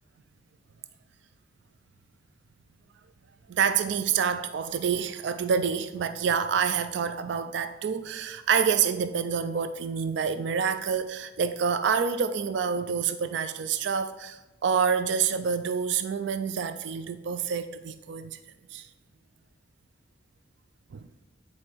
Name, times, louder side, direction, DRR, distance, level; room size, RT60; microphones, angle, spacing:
voice 1, 3.5-18.4 18.7-18.9 20.9-21.0, right 6 dB, 60° right, 0.3 m, -27 dB
9.4 x 4.3 x 4.5 m
head